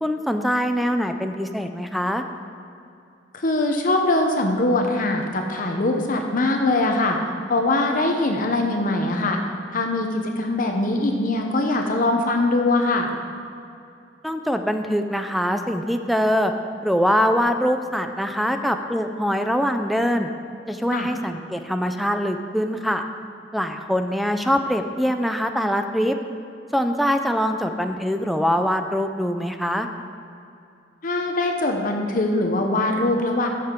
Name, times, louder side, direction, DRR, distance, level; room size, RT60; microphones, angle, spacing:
voice 1, 0.0-2.2 14.2-16.5 16.8-20.3 20.7-23.0 23.5-26.2 26.7-29.9, equal, ahead, 6 dB, 0.4 m, -23 dB
voice 2, 3.3-7.2 7.5-9.4 9.7-13.1 20.9-21.1 31.0-33.5, left 2 dB, 50° left, 3 dB, 0.8 m, -22 dB
13.5 x 6.6 x 3.7 m, 2.6 s
head